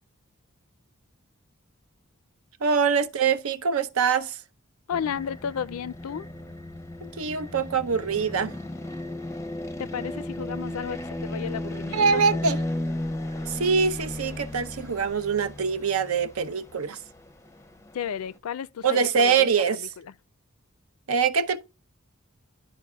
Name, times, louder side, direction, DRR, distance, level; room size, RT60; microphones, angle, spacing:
voice 1, 2.6-4.4 7.1-8.6 11.9-12.6 13.4-17.0 18.8-19.9 21.1-21.7, right 6 dB, 80° right, 0.7 m, -24 dB
voice 2, 4.9-6.3 9.8-12.2 17.9-18.8 19.2-19.5, left 8 dB, 85° left, 0.4 m, -33 dB
sound 1, 4.9-18.4, left 1 dB, 15° left, 0.5 m, -35 dB
12.0 x 4.6 x 2.3 m
head